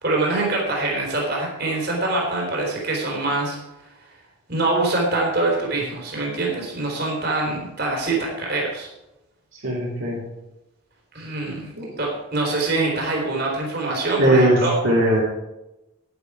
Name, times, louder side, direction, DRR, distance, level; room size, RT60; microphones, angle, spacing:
voice 1, 0.0-3.6 4.5-8.9 11.1-11.7 12.0-14.7, right 2 dB, 50° right, -2 dB, 4.0 m, -24 dB
voice 2, 9.6-10.2 11.8-11.9 14.2-15.2, right 1 dB, 65° right, -6 dB, 3.3 m, -19 dB
11.5 x 11.0 x 4.9 m, 0.96 s
head